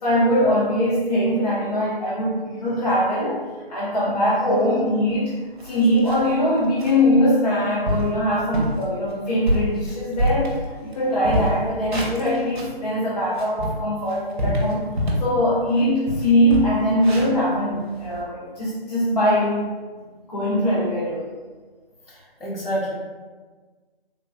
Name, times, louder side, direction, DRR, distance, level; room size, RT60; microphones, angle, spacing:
voice 1, 0.0-5.4 5.6-14.9 15.2-19.7 20.0-21.3, equal, 40° left, -7 dB, 0.6 m, -22 dB
sound 1, 5.1-5.2 5.6-6.4 6.8-7.0 7.5-7.6 7.9-8.2 8.5-8.8 9.3-11.0 11.2-12.8 13.2-15.3 15.7-15.8 16.1-18.2, equal, 50° right, 0.8 m, -26 dB
voice 2, 22.1-22.9, equal, 65° left, -5 dB, 1.3 m, -28 dB
3.5 x 2.9 x 2.2 m, 1.4 s
figure-of-eight pair, 155°, 30 cm